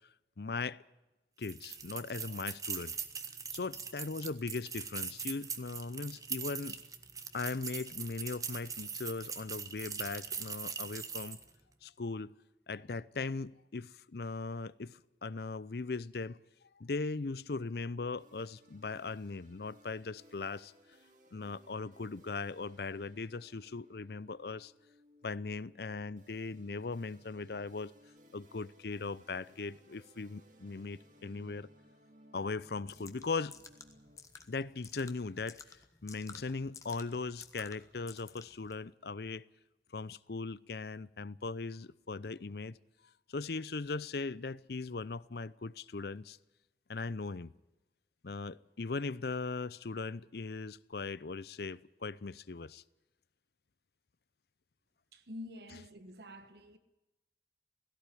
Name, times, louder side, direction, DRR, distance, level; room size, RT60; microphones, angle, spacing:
voice 1, 0.4-0.8 1.4-3.0 3.5-6.8 7.3-11.4 11.8-12.3 12.7-16.4 16.8-20.7 21.3-24.7 25.2-27.9 28.3-31.7 32.3-33.6 34.5-35.6 36.0-39.4 39.9-42.8 43.3-46.4 46.9-47.5 48.2-52.8, left 3 dB, 60° left, 0.6 m, -39 dB
sound 1, 1.4-11.5, right 6 dB, 20° right, 1.1 m, -41 dB
sound 2, 18.2-34.2, equal, 45° right, 2.5 m, -63 dB
sound 3, 32.8-38.7, left 5 dB, 20° left, 1.4 m, -54 dB
voice 2, 55.1-56.8, left 1 dB, 60° right, 1.3 m, -48 dB
17.0 x 16.5 x 9.9 m
head